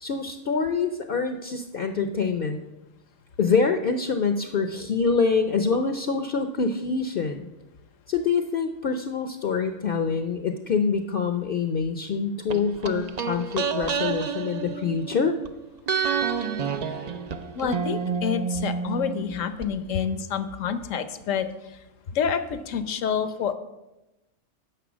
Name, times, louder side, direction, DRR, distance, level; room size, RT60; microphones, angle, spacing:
voice 1, 0.0-2.6 3.4-7.5 8.1-15.3, left 5 dB, 55° left, 7 dB, 0.7 m, -25 dB
sound 1, 12.5-15.5 15.9-19.7 19.9-20.0, right 6 dB, 50° right, 0.5 m, -29 dB
voice 2, 17.5-21.5 22.1-23.5, left 7 dB, 80° left, 11 dB, 1.1 m, -28 dB
10.0 x 6.6 x 6.1 m, 1.0 s
omnidirectional pair, 1.3 m